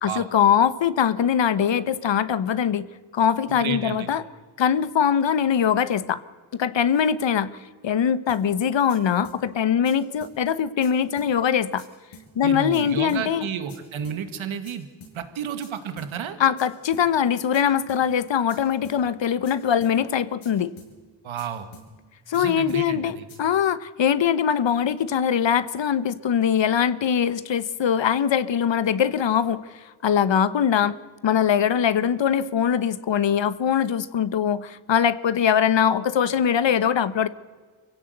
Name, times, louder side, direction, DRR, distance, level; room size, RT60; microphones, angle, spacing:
voice 1, 0.0-2.9 3.1-4.2 4.6-6.2 6.6-7.6 7.8-11.8 12.3-13.5 16.4-20.7 22.3-29.6 30.0-31.0 31.2-37.3, left 8 dB, 65° left, 15 dB, 1.2 m, -22 dB
voice 2, 3.6-4.1 12.4-14.9 15.1-16.4 21.2-21.7 22.3-23.2, right 7 dB, 80° right, 10 dB, 2.2 m, -31 dB
sound 1, 8.3-8.4 8.9-9.0 9.2-9.4 9.8-9.9 10.2-10.3 10.8-10.9 11.2-11.3 11.8-11.9 12.1-12.3 12.7-12.8 13.1-13.2 13.7-13.8 14.0-14.2 14.6-14.7 15.0-15.1 15.6-15.7 16.0-16.1 16.6-16.7 16.9-17.1 17.5-17.6 17.9-18.0 18.5-18.6 18.8-19.0 19.4-19.5 19.8-19.9 20.4-20.5 20.8-20.9 21.4-21.5 21.7-21.9 22.3-22.4 22.7-22.8 23.3-23.4, left 3 dB, 90° left, 7.1 m, -46 dB
25.0 x 16.0 x 8.1 m, 1.5 s
supercardioid pair, 50°, 47 cm